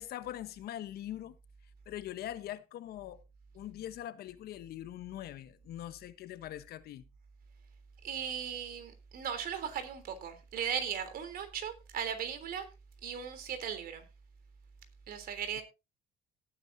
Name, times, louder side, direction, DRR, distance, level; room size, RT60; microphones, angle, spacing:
voice 1, 0.0-1.4 1.9-3.2 3.5-7.0, left 12 dB, 70° left, 1.1 m, -42 dB
voice 2, 8.0-12.7 13.0-14.0 15.1-15.6, right 8 dB, 60° right, 3.4 m, -37 dB
18.0 x 9.1 x 2.7 m
cardioid pair, 110°, 17 cm